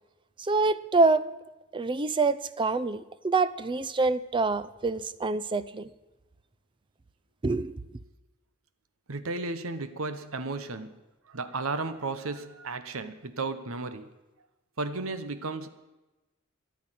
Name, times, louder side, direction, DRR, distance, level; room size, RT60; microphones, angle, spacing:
voice 1, 0.4-1.2 1.7-5.9 7.4-7.7, right 3 dB, 25° right, 16 dB, 0.5 m, -26 dB
voice 2, 9.1-11.0 11.2-14.1 14.8-15.7, right 3 dB, 85° right, 11 dB, 1.0 m, -34 dB
11.0 x 10.0 x 9.2 m, 1.1 s
head